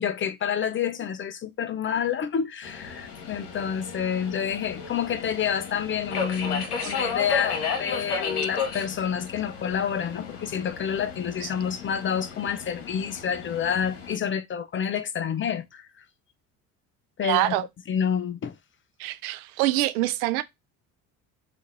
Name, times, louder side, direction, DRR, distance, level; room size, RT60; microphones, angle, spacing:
voice 1, 0.0-15.8 17.2-17.5 17.9-18.6, left 8 dB, 30° left, 0.4 m, -28 dB
Subway metro underground, 2.6-14.2, left 5 dB, 80° left, 1.1 m, -34 dB
voice 2, 17.2-17.6 19.0-20.4, right 16 dB, 75° right, 0.6 m, -25 dB
2.9 x 2.5 x 3.8 m
hypercardioid pair, 65°, 44 cm